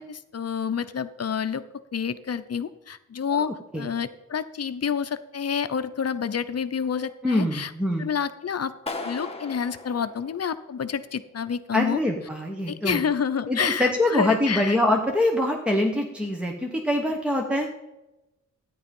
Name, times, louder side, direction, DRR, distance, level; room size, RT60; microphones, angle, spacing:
voice 1, 0.0-1.6 1.9-7.7 8.0-12.0 12.7-14.8, left 7 dB, 55° left, 12 dB, 0.8 m, -29 dB
voice 2, 3.3-3.9 7.2-8.1 11.7-13.0 13.5-17.7, left 1 dB, 5° right, 2 dB, 1.2 m, -24 dB
Clapping, 8.9-10.9, left 2 dB, 20° left, 1.5 m, -37 dB
13.0 x 9.9 x 5.4 m, 1.0 s
wide cardioid pair, 95°, 31 cm